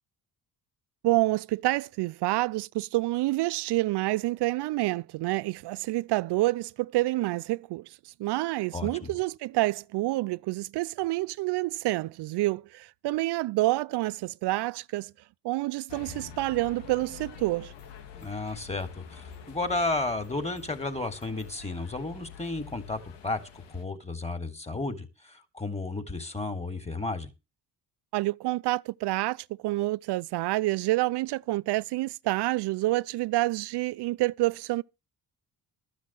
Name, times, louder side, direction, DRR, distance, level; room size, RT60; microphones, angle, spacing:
voice 1, 1.0-15.1 15.4-17.7 28.1-34.8, right 18 dB, 75° right, 0.6 m, -28 dB
voice 2, 8.7-9.1 18.1-23.4 23.7-27.3, left 2 dB, 15° left, 3.6 m, -33 dB
sound 1, 15.9-23.8, left 7 dB, 85° left, 2.7 m, -47 dB
13.5 x 6.3 x 7.6 m
cardioid pair, 85°, 41 cm